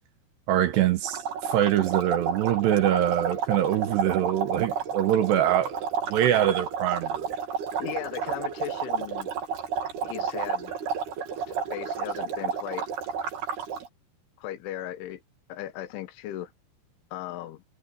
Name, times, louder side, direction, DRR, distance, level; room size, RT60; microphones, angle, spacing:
voice 1, 0.5-5.8 6.1-7.4, right 11 dB, 70° right, 2.7 m, -24 dB
sound 1, 1.0-13.9, right 6 dB, 55° right, 4.6 m, -31 dB
voice 2, 7.8-9.3 10.0-10.7 11.5-12.9 14.4-15.2 15.5-16.5 17.1-17.6, left 12 dB, 75° left, 3.5 m, -37 dB
omnidirectional pair, 6.0 m